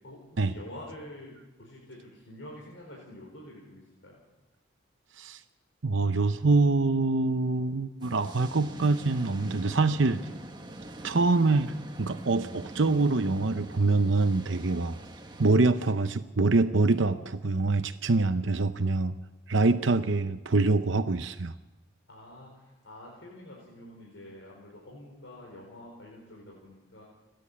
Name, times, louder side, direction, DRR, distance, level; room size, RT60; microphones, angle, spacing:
voice 1, 0.0-4.2 22.1-27.0, left 1 dB, 75° left, -3 dB, 4.8 m, -47 dB
voice 2, 5.8-10.2 11.0-11.7 12.0-15.0 15.4-19.1 19.5-21.5, right 3 dB, 70° right, 9 dB, 0.8 m, -25 dB
sound 1, 8.0-15.5, right 1 dB, 20° right, 1.5 m, -44 dB
29.5 x 10.5 x 8.7 m, 1.1 s
head